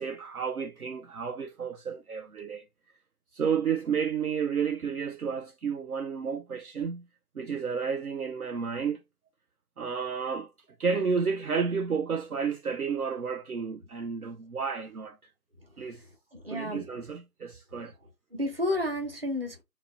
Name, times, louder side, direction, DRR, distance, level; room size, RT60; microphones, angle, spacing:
voice 1, 0.0-2.6 3.3-7.0 7.4-9.0 9.8-10.5 10.8-15.2 15.8-16.0 16.5-17.9, right 6 dB, 65° right, 0.5 m, -31 dB
voice 2, 16.3-16.9 18.3-19.6, left 1 dB, 35° right, 1.0 m, -31 dB
2.9 x 2.7 x 3.8 m
figure-of-eight pair, 170°, 49 cm